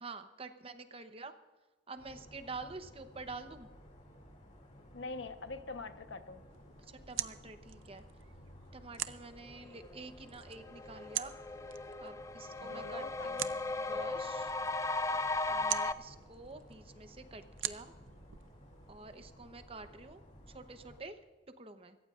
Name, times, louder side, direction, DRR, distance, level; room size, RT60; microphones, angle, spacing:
voice 1, 0.0-1.3 1.9-3.7 6.8-8.0 8.7-11.3 12.0-14.5 15.5-17.9 18.9-20.2 20.5-21.2 21.6-22.0, right 3 dB, 30° right, 8 dB, 0.8 m, -48 dB
sound 1, 2.0-21.0, equal, 35° left, 2.5 m, -57 dB
voice 2, 4.9-6.4 12.6-13.5, left 3 dB, 70° left, 8 dB, 1.0 m, -44 dB
sound 2, 6.5-19.3, right 13 dB, 80° right, 0.6 m, -45 dB
sound 3, 10.1-10.2 10.6-15.9, left 2 dB, 15° left, 0.3 m, -36 dB
25.0 x 14.5 x 2.5 m, 1.2 s
head